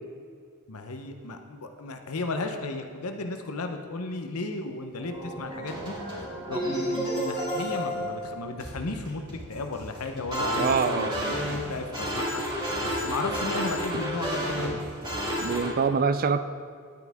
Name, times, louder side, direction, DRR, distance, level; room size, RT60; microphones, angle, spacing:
voice 1, 0.7-5.9 6.5-12.4 12.8-14.8, left 2 dB, 75° left, 6 dB, 0.9 m, -34 dB
sound 1, 5.0-15.7, equal, 20° right, 2.4 m, -31 dB
voice 2, 10.6-11.2 15.4-16.4, right 5 dB, 40° right, 12 dB, 0.4 m, -25 dB
10.5 x 9.4 x 3.6 m, 2.1 s
head